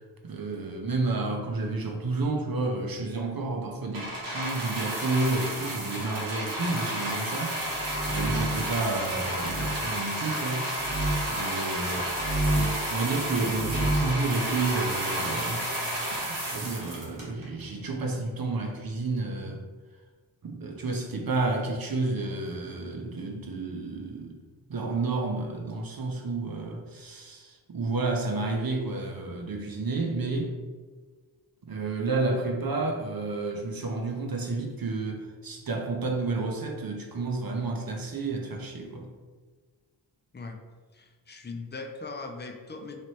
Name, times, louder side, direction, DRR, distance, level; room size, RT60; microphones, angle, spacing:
voice 1, 0.2-7.6 8.1-10.7 11.3-15.6 16.5-19.6 20.4-24.4 24.7-30.5 31.6-39.1, right 3 dB, 45° right, 2 dB, 0.8 m, -31 dB
sound 1, 3.9-17.6 18.4-18.5, right 1 dB, 85° right, 1.3 m, -31 dB
sound 2, 7.7-8.7 9.4-9.8 10.8-11.2 12.1-12.8 13.5-14.2, right 1 dB, 70° right, 1.0 m, -29 dB
voice 2, 40.9-43.0, left 3 dB, 25° left, 4 dB, 0.5 m, -39 dB
3.3 x 2.9 x 4.2 m, 1.4 s
cardioid pair, 55°, 47 cm